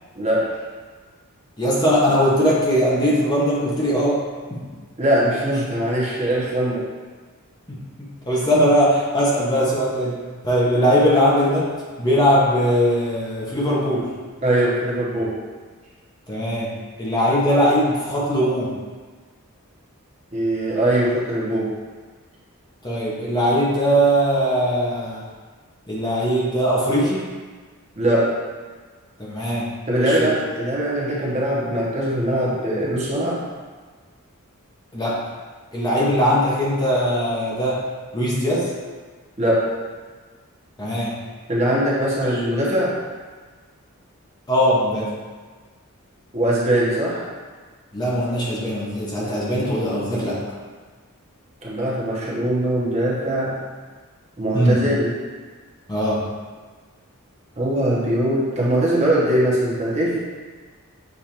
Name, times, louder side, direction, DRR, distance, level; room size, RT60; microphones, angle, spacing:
voice 1, 0.1-0.5 5.0-6.8 14.4-15.4 20.3-21.7 28.0-28.3 29.9-33.4 39.4-39.7 41.5-43.0 46.3-47.3 51.6-53.5 54.4-55.1 57.6-60.2, right 1 dB, 30° right, -6 dB, 0.9 m, -21 dB
voice 2, 1.6-4.2 4.5-4.6 7.7-10.2 10.4-11.7 12.0-14.1 16.3-18.8 22.8-25.3 25.9-27.3 29.2-29.7 30.0-30.3 34.9-35.2 35.7-37.8 38.1-38.7 40.8-41.1 42.3-42.4 44.5-45.1 47.9-50.4 54.5-54.8 55.9-56.3, equal, 20° left, -6 dB, 0.7 m, -20 dB
6.6 x 2.5 x 2.9 m, 1.4 s
head